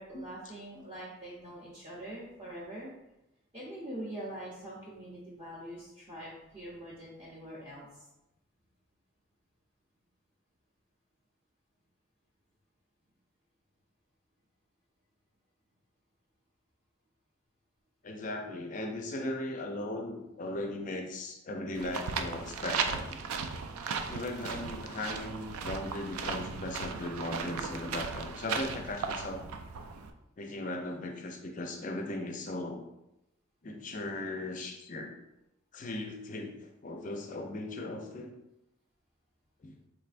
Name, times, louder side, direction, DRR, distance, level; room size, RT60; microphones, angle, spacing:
voice 1, 0.0-2.9 3.5-8.0, right 1 dB, 25° right, -8 dB, 0.6 m, -44 dB
voice 2, 18.0-23.5 24.1-29.4 30.4-32.8 33.6-35.1 35.7-36.6 36.8-38.3 39.6-39.7, left 2 dB, 35° left, 4 dB, 0.4 m, -38 dB
sound 1, 21.7-30.1, right 5 dB, 85° right, 0.4 m, -36 dB
4.0 x 3.2 x 2.5 m, 0.91 s
head